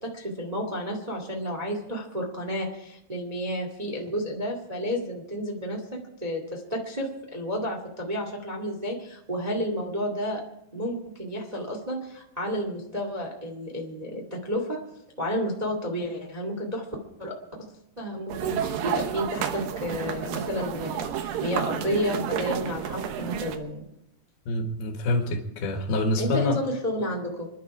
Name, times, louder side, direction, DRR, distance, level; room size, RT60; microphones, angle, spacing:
voice 1, 0.0-5.8 6.2-10.4 10.7-14.8 15.2-16.8 17.2-17.4 18.0-23.8 26.2-27.5, equal, 35° right, 0.6 m, -31 dB
sound 1, 18.3-23.6, right 8 dB, 70° right, 2.5 m, -31 dB
voice 2, 24.5-26.6, left 2 dB, 70° left, 3.3 m, -26 dB
27.0 x 11.5 x 4.8 m
omnidirectional pair, 4.9 m